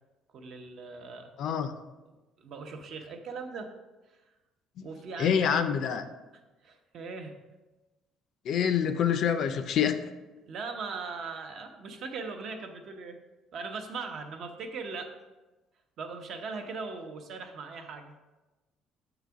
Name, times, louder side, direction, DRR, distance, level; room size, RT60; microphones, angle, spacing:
voice 1, 0.3-1.3 2.4-3.7 4.8-5.5 6.6-7.3 10.5-13.2 13.5-15.1 16.0-18.1, right 4 dB, 50° right, 5 dB, 0.8 m, -39 dB
voice 2, 1.4-1.7 4.8-4.9 5.2-6.1 8.4-10.0, left 8 dB, 55° left, 9 dB, 0.5 m, -26 dB
6.9 x 4.0 x 4.6 m, 1.1 s
cardioid pair, 155°, 0 cm